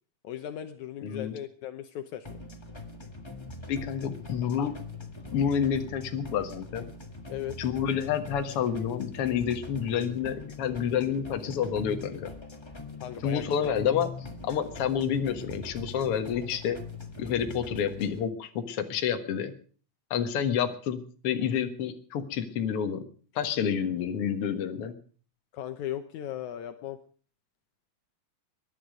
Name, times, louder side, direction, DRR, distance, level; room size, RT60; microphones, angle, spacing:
voice 1, 0.2-2.4 7.3-7.6 13.0-13.7 25.5-27.0, left 11 dB, 75° left, 9 dB, 2.2 m, -37 dB
voice 2, 1.0-1.4 3.7-4.7 5.3-6.9 7.6-12.3 13.2-14.1 14.4-16.8 17.2-19.5 20.1-23.0 23.4-24.9, left 8 dB, 55° left, 7 dB, 2.1 m, -29 dB
sound 1, 2.2-18.2, left 3 dB, 20° left, 0.7 m, -42 dB
21.5 x 11.0 x 5.1 m, 0.42 s
omnidirectional pair, 3.6 m